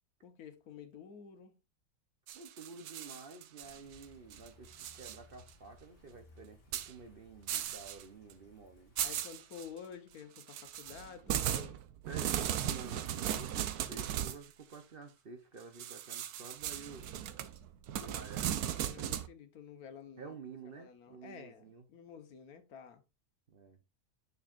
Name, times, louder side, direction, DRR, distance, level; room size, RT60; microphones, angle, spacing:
voice 1, 0.2-1.6 9.0-11.8 18.0-18.2 18.8-20.4 20.7-23.0, left 7 dB, 75° left, 1.5 m, -51 dB
voice 2, 2.3-8.9 12.1-12.3 12.6-17.1 17.9-18.6 20.2-21.9 23.5-23.8, right 4 dB, 45° right, 0.8 m, -50 dB
sound 1, 2.3-4.0 4.3-5.2 5.5-5.6 6.7-6.9 7.5-8.0 8.3-8.4 9.0-9.7 10.4-14.4 15.8-19.3, right 11 dB, 80° right, 1.2 m, -37 dB
sound 2, 3.6-9.1, left 2 dB, 40° left, 1.9 m, -62 dB
8.7 x 6.4 x 2.4 m
omnidirectional pair, 1.6 m